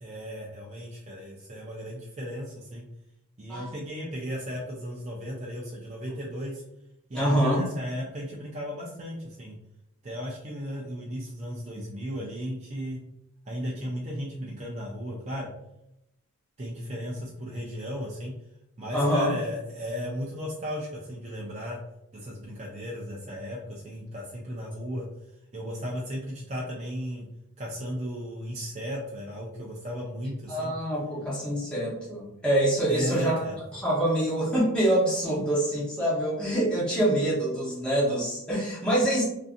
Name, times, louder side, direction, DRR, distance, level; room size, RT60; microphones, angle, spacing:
voice 1, 0.0-2.8 3.4-6.6 7.1-9.5 10.0-13.0 13.5-15.5 16.6-18.3 18.8-21.8 22.1-25.1 25.5-27.3 27.6-30.7 32.9-33.6, equal, 30° right, -4 dB, 0.4 m, -35 dB
voice 2, 7.1-7.6 18.9-19.3 30.5-33.4 33.7-39.2, right 1 dB, 5° left, -8 dB, 0.8 m, -25 dB
2.5 x 2.5 x 2.4 m, 0.85 s
head